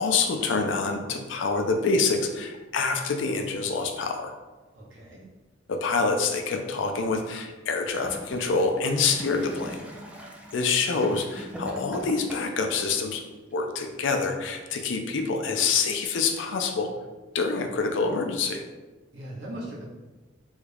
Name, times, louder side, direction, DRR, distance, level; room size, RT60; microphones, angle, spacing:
voice 1, 0.0-4.3 5.7-9.8 10.5-13.2 13.5-16.9 17.3-18.6, left 4 dB, 90° left, 5 dB, 0.4 m, -26 dB
voice 2, 4.7-5.2 19.1-19.8, right 1 dB, 85° right, -4 dB, 1.0 m, -39 dB
Gurgling / Toilet flush, 7.8-12.7 13.5-13.6, equal, 5° right, 0.3 m, -41 dB
3.5 x 2.3 x 3.4 m, 1.2 s
head